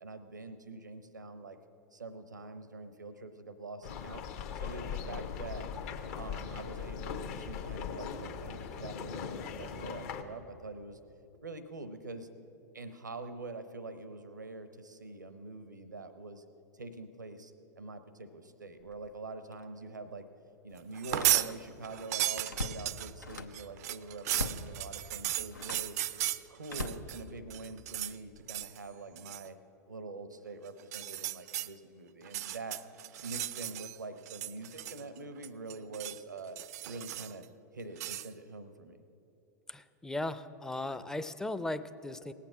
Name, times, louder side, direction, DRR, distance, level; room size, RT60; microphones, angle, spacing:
voice 1, 0.0-1.6 1.9-4.2 4.5-5.7 6.2-11.0 11.4-12.3 12.7-16.4 16.8-20.2 20.6-26.0 26.5-29.6 29.9-32.8 33.2-36.6 36.9-37.4 37.7-39.0, right 3 dB, 85° right, 11 dB, 0.8 m, -45 dB
sound 1, 3.8-10.2, left 7 dB, 55° left, 1.0 m, -40 dB
Slam, 18.8-19.1 19.5-19.6 21.0-21.8 22.1-23.7 24.3-24.7 25.5-25.9 26.7-27.7 28.3-28.6, left 2 dB, 90° left, 0.7 m, -41 dB
sound 2, 20.9-21.5 21.8-27.2 27.5-28.2 28.5-28.8 29.2-29.5 30.8-31.7 32.2-34.0 34.3-35.2 35.4-36.2 36.6-37.4 38.0-38.3, right 13 dB, 60° right, 0.4 m, -35 dB
voice 2, 39.7-42.3, left 2 dB, 5° left, 12 dB, 0.5 m, -37 dB
18.0 x 8.5 x 6.1 m, 2.9 s
figure-of-eight pair, 90°, 9 cm